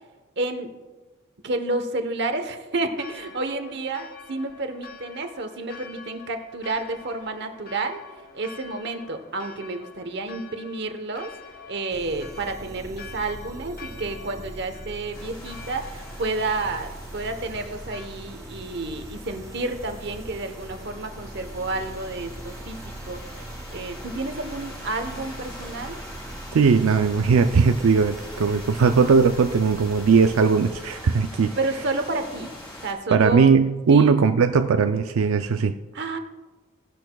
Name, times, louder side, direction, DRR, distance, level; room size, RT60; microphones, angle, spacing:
voice 1, 0.4-0.7 1.4-8.0 8.3-11.3 11.7-22.8 23.1-26.0 31.6-32.5 32.8-33.5 33.9-34.2 35.9-36.2, right 2 dB, 55° right, 7 dB, 1.0 m, -30 dB
Church bell, 2.9-18.1, left 5 dB, 45° left, 0.7 m, -46 dB
sound 1, 11.9-31.1, right 1 dB, 15° right, 0.4 m, -41 dB
sound 2, 15.1-32.9, equal, 20° left, 3.7 m, -43 dB
voice 2, 26.5-31.6 33.1-35.8, right 5 dB, 85° right, 8 dB, 0.4 m, -19 dB
16.5 x 10.5 x 2.3 m, 1.2 s
head